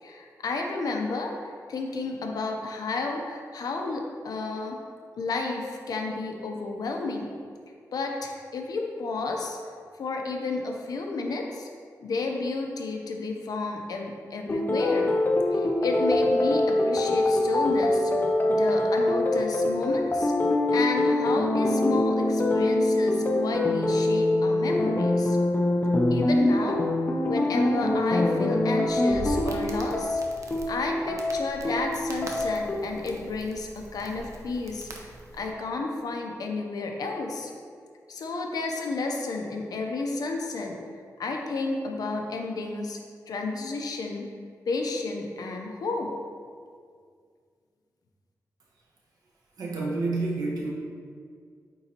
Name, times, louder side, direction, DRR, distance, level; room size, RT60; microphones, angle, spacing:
voice 1, 0.0-4.8 5.2-7.3 7.9-9.6 10.0-11.7 12.0-15.1 15.5-18.1 18.5-20.3 20.7-25.4 26.1-26.8 27.3-30.2 30.7-37.5 38.1-40.8 41.2-43.0 43.3-44.3 44.7-46.1, left 3 dB, 80° left, 2 dB, 0.7 m, -31 dB
sound 1, 14.5-32.8, left 1 dB, 30° left, 0.6 m, -24 dB
Crackle, 28.9-35.5, right 2 dB, 55° right, 0.7 m, -41 dB
voice 2, 49.6-50.7, right 3 dB, 85° right, -3 dB, 1.2 m, -28 dB
8.5 x 3.9 x 2.9 m, 2.1 s
wide cardioid pair, 105°, 6 cm